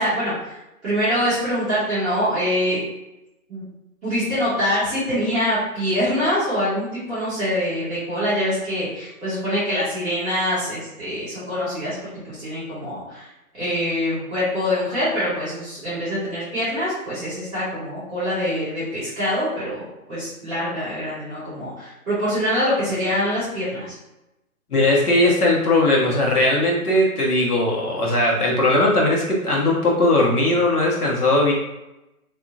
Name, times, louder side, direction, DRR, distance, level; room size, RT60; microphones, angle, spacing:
voice 1, 0.0-2.8 3.5-3.6 4.0-11.9 12.3-13.3 13.6-23.9, equal, ahead, -23 dB, 0.9 m, -24 dB
voice 2, 24.7-31.5, left 1 dB, 85° left, -3 dB, 1.1 m, -19 dB
2.7 x 2.5 x 2.5 m, 0.95 s
hypercardioid pair, 170°, 44 cm